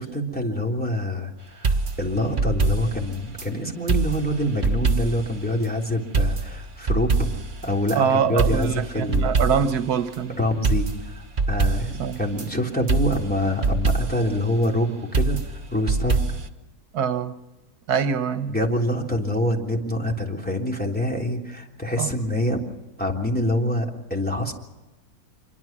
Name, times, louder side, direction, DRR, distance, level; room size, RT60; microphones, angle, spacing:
voice 1, 0.0-7.3 7.6-9.3 10.4-11.2 11.5-16.2 18.5-22.6 23.0-24.5, left 1 dB, 5° left, 3.4 m, -26 dB
sound 1, 1.6-3.5 3.9-5.4 5.6-5.7 6.1-8.0 8.4-9.9 10.1-10.2 10.6-12.5 12.9-14.3 15.1-16.5, right 4 dB, 35° right, 1.5 m, -24 dB
voice 2, 7.9-10.4 12.0-12.2 16.9-17.4 17.9-18.5 22.0-22.1, right 7 dB, 85° right, 1.5 m, -24 dB
26.0 x 23.0 x 6.1 m
omnidirectional pair, 1.6 m